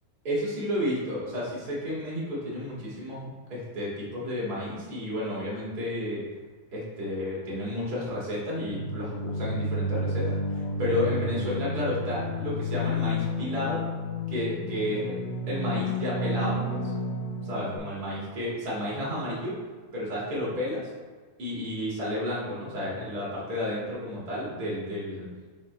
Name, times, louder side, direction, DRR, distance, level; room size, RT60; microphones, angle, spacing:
voice 1, 0.2-6.2 6.7-13.8 14.3-15.2 15.5-16.9 17.4-19.5 19.9-20.8 21.4-25.3, left 1 dB, 35° right, -7 dB, 1.7 m, -32 dB
sound 1, 8.7-17.8, left 1 dB, 75° left, 2.3 m, -31 dB
7.6 x 4.5 x 3.2 m, 1.4 s
omnidirectional pair, 4.5 m